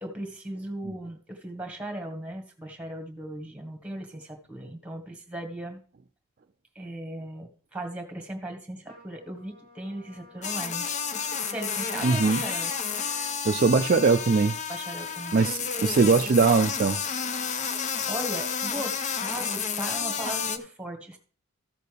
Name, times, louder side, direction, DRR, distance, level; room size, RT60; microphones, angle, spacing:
voice 1, 0.0-5.8 6.7-10.8 11.4-12.7 14.7-15.4 18.1-21.2, right 1 dB, 5° right, 5 dB, 1.4 m, -37 dB
Trumpet, 8.9-13.4, equal, 85° left, 3.3 m, -45 dB
sound 1, 10.4-20.6, left 6 dB, 30° left, 0.5 m, -31 dB
voice 2, 12.0-12.4 13.4-14.6 15.3-17.0, right 4 dB, 40° right, 7 dB, 0.4 m, -21 dB
14.0 x 6.7 x 3.4 m, 0.42 s
head